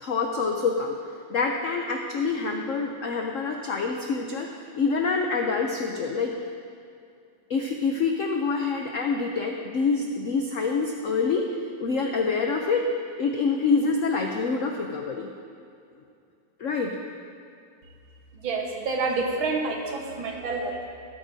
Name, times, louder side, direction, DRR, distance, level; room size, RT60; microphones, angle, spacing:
voice 1, 0.0-1.0 1.3-4.5 4.8-6.3 7.5-11.5 11.8-12.9 13.2-15.3 16.6-16.9, left 4 dB, 85° left, 2 dB, 0.7 m, -26 dB
voice 2, 18.4-20.9, right 3 dB, 80° right, 0 dB, 2.0 m, -28 dB
13.5 x 13.0 x 2.7 m, 2.4 s
omnidirectional pair, 2.2 m